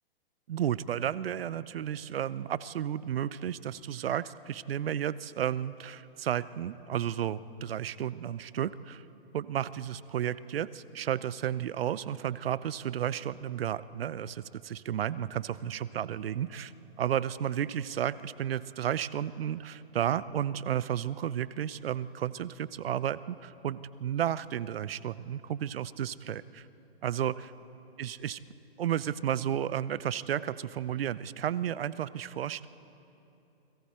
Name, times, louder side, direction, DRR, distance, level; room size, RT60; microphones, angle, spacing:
voice 1, 0.5-9.0 9.3-16.7 17.0-26.6 27.0-27.3 28.0-28.4 28.8-32.7, right 10 dB, 70° right, 18 dB, 0.7 m, -32 dB
29.0 x 22.0 x 4.4 m, 2.9 s
hypercardioid pair, 125°, 31 cm